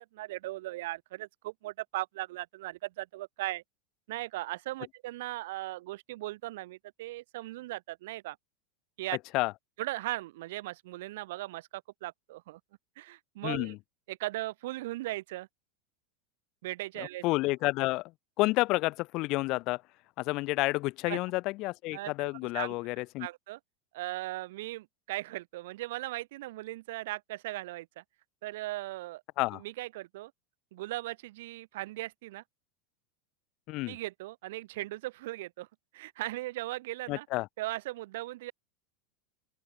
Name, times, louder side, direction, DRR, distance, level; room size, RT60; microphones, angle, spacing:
voice 1, 0.0-3.6 4.1-8.4 9.0-9.2 9.8-12.6 13.0-13.8 14.1-15.5 16.6-17.2 21.1-21.2 21.9-22.7 23.2-23.6 23.9-28.0 28.4-29.2 29.5-30.3 30.7-32.4 33.9-35.7 35.9-37.3 37.6-38.5, right 18 dB, 70° right, 3.1 m, -38 dB
voice 2, 13.4-13.8 17.0-18.0 18.4-19.8 20.2-23.3 29.4-29.6 33.7-34.0 37.1-37.5, left 21 dB, 55° left, 0.7 m, -30 dB
open air
hypercardioid pair, 95°, 0 cm